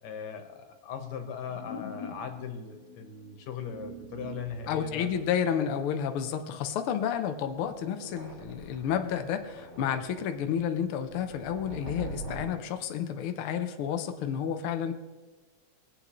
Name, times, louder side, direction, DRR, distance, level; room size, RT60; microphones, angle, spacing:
voice 1, 0.0-5.1, left 7 dB, 65° left, 6 dB, 2.4 m, -39 dB
sound 1, 1.4-3.8 4.1-4.2 7.5-12.5, left 1 dB, 15° left, 2.1 m, -43 dB
sound 2, 3.6-5.4, right 10 dB, 75° right, 2.3 m, -46 dB
voice 2, 4.7-14.9, left 8 dB, 85° left, 7 dB, 1.2 m, -31 dB
22.5 x 8.3 x 3.1 m, 1.3 s
omnidirectional pair, 3.5 m